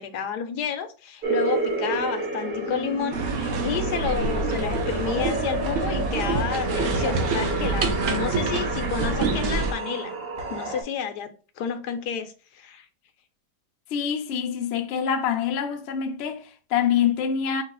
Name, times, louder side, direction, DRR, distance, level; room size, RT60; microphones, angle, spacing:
voice 1, 0.0-10.1 10.5-11.3 11.6-12.9, left 7 dB, 80° left, 1.2 m, -30 dB
sound 1, 1.2-10.8, right 2 dB, 40° right, 1.0 m, -30 dB
sound 2, 3.1-9.7, right 3 dB, 65° right, 1.1 m, -27 dB
voice 2, 13.9-17.6, left 8 dB, 65° left, 0.6 m, -25 dB
5.3 x 2.4 x 3.8 m
omnidirectional pair, 1.8 m